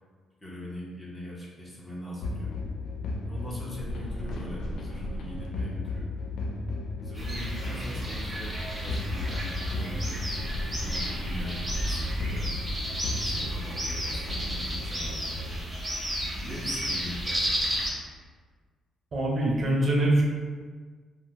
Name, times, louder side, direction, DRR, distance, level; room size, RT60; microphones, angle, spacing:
voice 1, 0.4-2.5 3.3-6.1 7.0-12.5 13.0-15.9 16.3-17.6, equal, 15° left, -7 dB, 1.0 m, -42 dB
sound 1, 2.2-15.5, left 2 dB, 75° left, 0.4 m, -35 dB
sound 2, 7.2-17.9, equal, 15° right, 0.9 m, -32 dB
voice 2, 19.1-20.2, right 1 dB, 45° right, -2 dB, 0.7 m, -23 dB
2.6 x 2.0 x 3.4 m, 1.5 s
cardioid pair, 90°, 0 cm